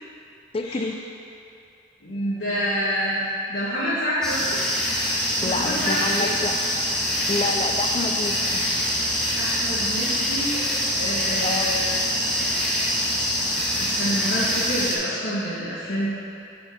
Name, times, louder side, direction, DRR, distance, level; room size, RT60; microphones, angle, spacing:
voice 1, 0.5-1.0 5.4-6.6 7.3-8.7 11.4-11.8, left 3 dB, 30° left, 4 dB, 0.4 m, -28 dB
voice 2, 2.0-3.2 3.5-4.6 5.4-6.3 9.4-10.7 10.9-11.9 12.2-12.3 13.8-16.1, equal, 85° left, -11 dB, 1.4 m, -27 dB
sound 1, 4.2-15.0, equal, 5° left, 1.1 m, -24 dB
7.1 x 5.2 x 4.9 m, 2.6 s
head